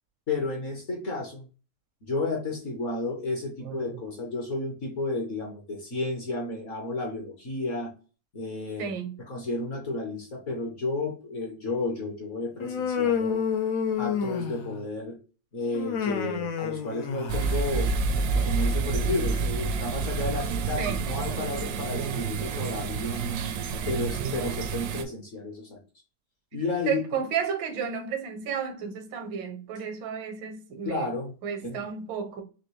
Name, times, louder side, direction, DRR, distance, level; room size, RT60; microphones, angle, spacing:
voice 1, 0.3-1.4 2.0-7.9 8.3-8.9 9.3-13.4 14.0-15.2 15.5-17.9 18.4-23.5 23.9-25.8 26.5-27.0 30.8-31.3 31.6-31.8, left 2 dB, 50° left, 1.1 m, -32 dB
voice 2, 3.6-4.0 8.8-9.1 20.8-21.0 26.8-31.1 31.4-32.4, right 7 dB, 85° right, 1.6 m, -32 dB
Human voice, 12.6-14.9 15.7-17.6, left 7 dB, 70° left, 0.8 m, -29 dB
sound 1, 17.3-25.0, right 4 dB, 70° right, 0.9 m, -28 dB
4.2 x 2.9 x 3.1 m
omnidirectional pair, 2.0 m